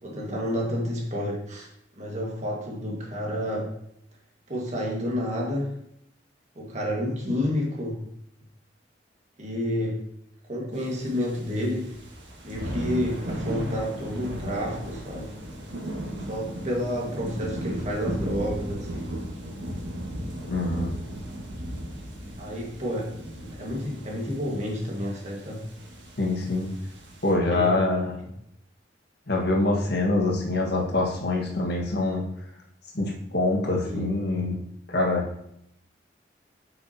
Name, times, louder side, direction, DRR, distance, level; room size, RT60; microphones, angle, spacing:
voice 1, 0.0-1.7 2.0-3.7 4.5-5.7 6.6-8.0 9.4-10.0 10.5-11.9 12.4-15.3 16.3-19.1 22.4-23.1 23.6-25.6 27.3-27.7 33.8-34.1, equal, 40° right, -2 dB, 1.8 m, -30 dB
sound 1, 10.7-27.3, equal, 85° right, 1.8 m, -36 dB
voice 2, 20.5-20.9 26.2-26.7 27.2-28.1 29.3-32.2 32.9-34.6 34.9-35.2, left 2 dB, 60° left, -1 dB, 1.6 m, -25 dB
8.6 x 5.8 x 2.9 m, 0.76 s
head